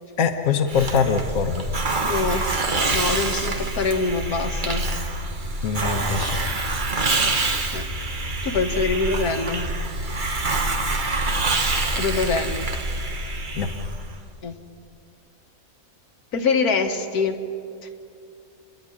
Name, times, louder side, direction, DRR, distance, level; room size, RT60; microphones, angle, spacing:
voice 1, 0.2-1.7 5.6-6.4 13.6-13.7, left 6 dB, 65° left, 5 dB, 1.4 m, -23 dB
Hiss, 0.7-14.2, right 2 dB, 35° right, 1.2 m, -26 dB
voice 2, 2.0-4.9 7.7-7.8 8.4-9.7 11.9-12.7 14.4-14.6 16.3-17.4, left 4 dB, 85° left, 4 dB, 1.8 m, -24 dB
29.0 x 10.5 x 9.9 m, 2.4 s
omnidirectional pair, 1.5 m